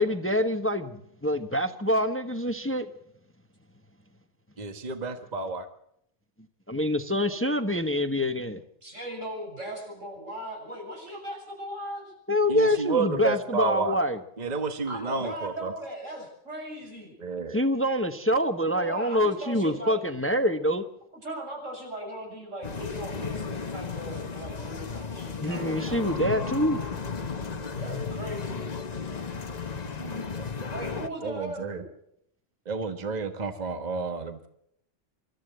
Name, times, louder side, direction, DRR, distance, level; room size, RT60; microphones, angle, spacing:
voice 1, 0.0-2.9 6.7-8.6 12.3-14.2 17.5-20.8 25.4-26.8, left 1 dB, 10° left, 9 dB, 1.0 m, -26 dB
voice 2, 4.6-5.6 12.5-14.0 14.4-15.7 17.2-17.6 30.0-30.5 31.2-31.8 32.7-34.5, right 4 dB, 35° right, 8 dB, 1.5 m, -31 dB
voice 3, 8.8-12.1 14.9-17.2 18.7-20.0 21.2-26.4 27.8-28.7 30.7-31.9, right 1 dB, 85° right, 0 dB, 7.8 m, -38 dB
sound 1, 22.6-31.1, left 5 dB, 35° left, 1.1 m, -34 dB
25.0 x 13.5 x 7.9 m, 0.75 s
omnidirectional pair, 1.3 m